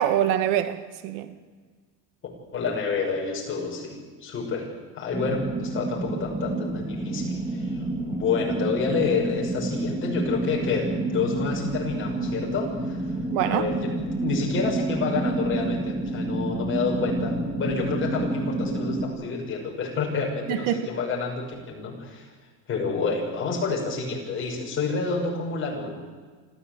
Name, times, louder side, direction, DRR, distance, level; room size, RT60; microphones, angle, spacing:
voice 1, 0.0-1.3 13.3-13.7 20.5-20.9, right 11 dB, 80° right, 1.8 m, -25 dB
voice 2, 2.5-4.7 4.9-13.1 13.4-13.9 14.2-22.3 22.7-25.9, left 5 dB, 30° left, 6.3 m, -29 dB
sound 1, 5.1-19.1, right 2 dB, 15° right, 2.4 m, -29 dB
25.5 x 15.5 x 8.3 m
cardioid pair, 155°, 43 cm